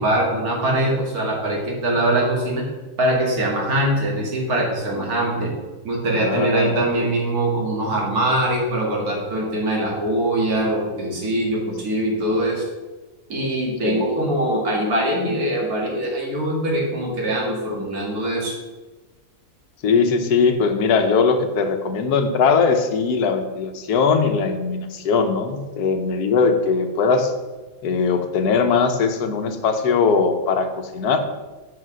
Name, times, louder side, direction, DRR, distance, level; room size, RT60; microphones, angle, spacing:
voice 1, 0.0-2.6 3.0-5.5 5.8-12.7 13.3-18.5, right 1 dB, 70° right, -1 dB, 2.4 m, -22 dB
voice 2, 6.1-7.1 13.8-14.0 19.8-27.3 27.8-31.2, left 5 dB, 85° left, 7 dB, 1.4 m, -20 dB
8.0 x 5.0 x 6.2 m, 1.2 s
omnidirectional pair, 1.6 m